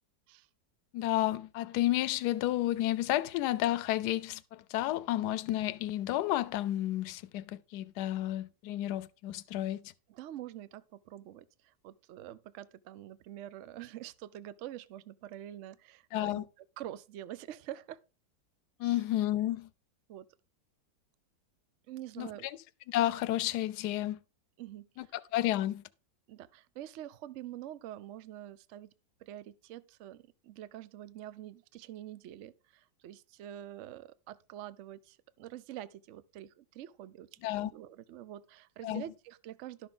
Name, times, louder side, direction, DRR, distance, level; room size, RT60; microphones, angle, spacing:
voice 1, 0.9-9.9 16.1-16.4 18.8-19.7 22.2-22.6 22.9-24.2 25.0-25.8 37.4-37.7 38.8-39.0, left 14 dB, 75° left, 1.1 m, -31 dB
voice 2, 10.1-16.5 16.8-18.0 18.8-19.0 20.1-20.3 21.9-22.5 24.6-25.1 26.3-28.9 29.2-39.9, right 12 dB, 85° right, 0.6 m, -46 dB
11.5 x 6.2 x 3.8 m
omnidirectional pair, 1.9 m